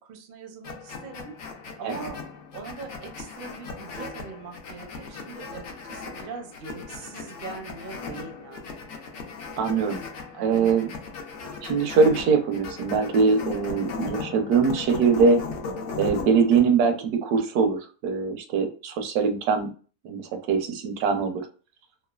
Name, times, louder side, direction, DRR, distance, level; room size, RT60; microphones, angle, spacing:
voice 1, 0.0-1.4 1.8-2.2 2.5-8.7 10.3-11.0, right 4 dB, 60° right, 4 dB, 0.6 m, -41 dB
sound 1, 0.6-16.7, left 4 dB, 65° left, 0.8 m, -37 dB
voice 2, 9.6-10.0 10.4-10.9 11.6-15.4 16.0-19.7 20.0-21.4, right 5 dB, 85° right, 6 dB, 1.1 m, -22 dB
3.1 x 2.1 x 2.2 m, 0.37 s
omnidirectional pair, 1.6 m